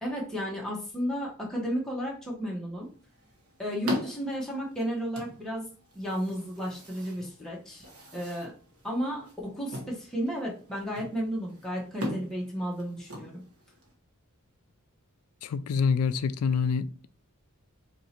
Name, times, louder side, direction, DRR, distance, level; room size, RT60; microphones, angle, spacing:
voice 1, 0.0-2.9 3.6-5.7 5.9-8.5 8.8-13.4, equal, ahead, 0.8 m, -33 dB
sound 1, 2.8-13.9, left 1 dB, 70° right, 1.1 m, -40 dB
voice 2, 15.4-17.1, left 5 dB, 75° left, 0.3 m, -26 dB
2.9 x 2.7 x 4.2 m
head